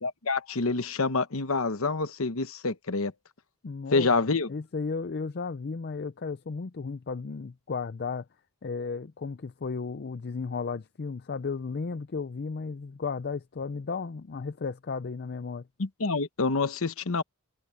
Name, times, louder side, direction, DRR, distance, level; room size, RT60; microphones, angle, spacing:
voice 1, 0.0-3.1 3.9-4.5 15.8-17.2, left 3 dB, 70° left, 1.0 m, -27 dB
voice 2, 3.6-8.2 8.6-15.6, left 4 dB, 45° left, 0.5 m, -34 dB
head